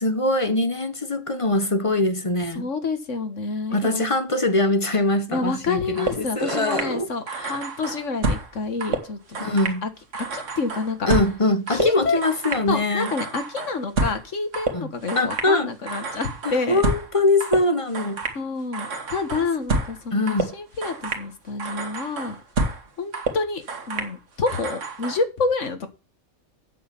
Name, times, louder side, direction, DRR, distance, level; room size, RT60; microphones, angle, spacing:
voice 1, 0.0-2.7 3.7-7.6 9.4-9.8 11.1-13.1 14.7-14.9 15.1-15.7 16.4-18.2 20.1-20.5, left 2 dB, 30° left, 1.0 m, -23 dB
voice 2, 2.6-4.0 5.3-11.1 11.7-12.2 12.7-16.8 18.4-22.4 23.0-25.9, left 4 dB, 75° left, 2.0 m, -28 dB
sound 1, 5.9-7.0 7.3-8.5 8.8-9.8 10.1-12.7 13.0-14.3 14.5-15.6 15.9-17.1 17.4-18.4 18.7-20.0 20.3-21.3 21.6-22.9 23.1-24.1 24.5-25.2, right 3 dB, 80° right, 1.9 m, -29 dB
8.5 x 6.5 x 7.1 m
omnidirectional pair, 1.3 m